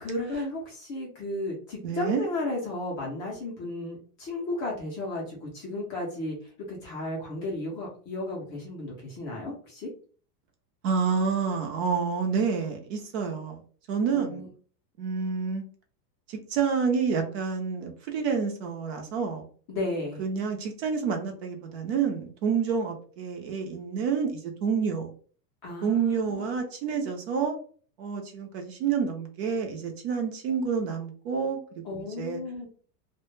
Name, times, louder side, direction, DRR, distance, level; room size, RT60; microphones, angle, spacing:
voice 1, 0.0-6.4 6.7-9.9 14.1-14.5 19.7-20.2 25.6-26.5 31.9-32.7, left 2 dB, 25° left, -3 dB, 0.4 m, -34 dB
voice 2, 1.8-2.2 10.8-13.6 13.9-14.4 15.0-15.6 16.3-19.5 20.2-25.1 25.8-27.6 28.0-32.4, right 6 dB, 45° right, 3 dB, 0.5 m, -28 dB
2.1 x 2.0 x 3.0 m, 0.43 s
supercardioid pair, 150°, 49 cm